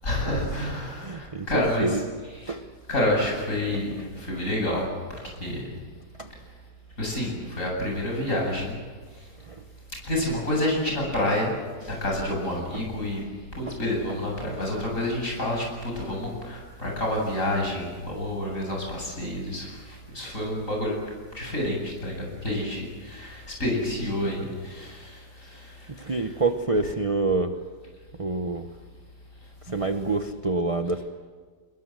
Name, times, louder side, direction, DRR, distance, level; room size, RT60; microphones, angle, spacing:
voice 1, 0.0-2.0 2.4-2.6 2.9-4.9 5.4-5.6 7.0-8.8 10.0-11.6 11.8-13.2 13.6-21.0 21.3-26.1, left 1 dB, 45° left, -1 dB, 8.6 m, -28 dB
voice 2, 1.0-2.0 2.5-2.6 3.7-4.2 6.2-6.3 9.4-9.6 12.7-12.8 13.7-13.8 14.1-14.2 14.6-14.8 26.0-27.6 28.2-28.7 29.7-31.0, right 3 dB, 25° right, 7 dB, 0.8 m, -28 dB
28.5 x 21.0 x 7.7 m, 1.6 s
omnidirectional pair, 1.9 m